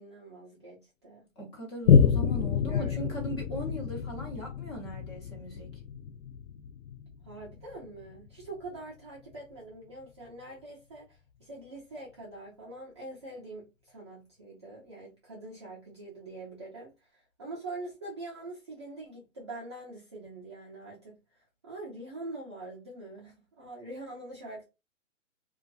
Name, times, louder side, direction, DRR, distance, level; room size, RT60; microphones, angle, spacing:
voice 1, 0.0-1.3 2.7-3.1 7.2-24.6, right 2 dB, 25° right, 0.4 m, -44 dB
voice 2, 1.4-5.7, equal, 20° left, 0.7 m, -39 dB
Boom, 1.9-8.8 9.3-9.4, left 7 dB, 70° left, 0.5 m, -28 dB
2.4 x 2.3 x 2.3 m
hypercardioid pair, 150°, 39 cm